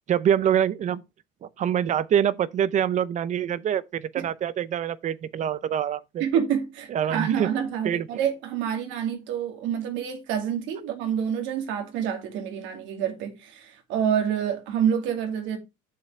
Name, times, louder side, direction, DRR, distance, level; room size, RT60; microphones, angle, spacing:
voice 1, 0.1-1.0 1.4-6.2 6.9-7.5 7.8-8.1, right 9 dB, 40° right, 0.7 m, -25 dB
voice 2, 6.2-15.6, right 8 dB, 70° right, 2.3 m, -27 dB
8.5 x 7.2 x 3.2 m
supercardioid pair, 115°, 20 cm